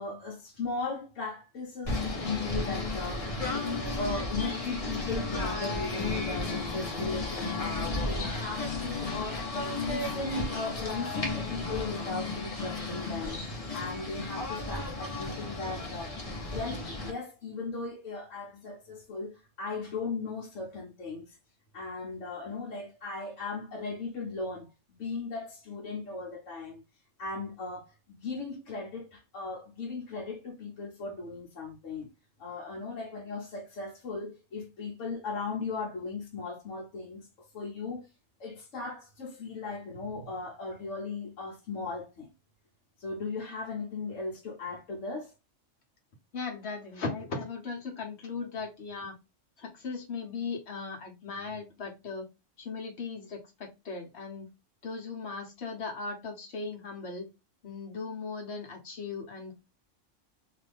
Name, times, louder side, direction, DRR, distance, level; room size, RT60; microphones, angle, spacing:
voice 1, 0.0-9.5 9.7-13.4 13.7-21.3 21.7-26.8 27.2-32.1 32.4-38.1 38.4-42.3 43.0-45.3, left 3 dB, 75° left, 1.2 m, -37 dB
Singing / Bird, 1.8-17.1, left 3 dB, 35° left, 0.7 m, -33 dB
voice 2, 46.3-49.1 49.6-52.3 52.6-54.5 54.8-57.3 57.6-59.5, left 4 dB, 60° left, 1.2 m, -38 dB
2.8 x 2.4 x 3.3 m
omnidirectional pair, 1.3 m